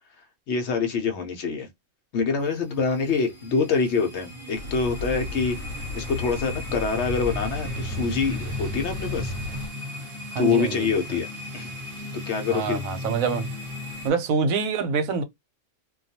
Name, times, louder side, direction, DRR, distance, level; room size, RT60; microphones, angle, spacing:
voice 1, 0.5-1.7 2.1-5.6 5.9-9.3 10.4-11.3 11.5-11.7 12.3-12.9, left 5 dB, 65° left, 0.8 m, -25 dB
sound 1, 2.4-14.1, left 1 dB, 45° right, 0.9 m, -36 dB
sound 2, 4.5-9.7, left 2 dB, 90° left, 1.0 m, -34 dB
voice 2, 10.3-11.2 12.5-13.5 14.0-15.2, right 5 dB, 90° right, 1.0 m, -26 dB
2.3 x 2.2 x 2.7 m
omnidirectional pair, 1.4 m